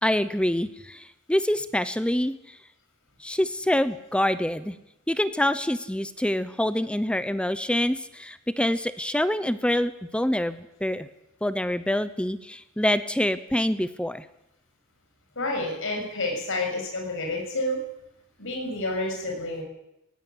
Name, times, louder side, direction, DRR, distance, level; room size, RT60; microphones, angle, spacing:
voice 1, 0.0-1.0 1.3-2.3 3.2-4.8 5.1-11.1 11.4-14.2, left 1 dB, 5° left, 13 dB, 0.7 m, -26 dB
voice 2, 15.4-17.8 18.4-19.6, left 2 dB, 60° left, 1 dB, 7.0 m, -29 dB
18.0 x 17.0 x 9.9 m, 0.87 s
head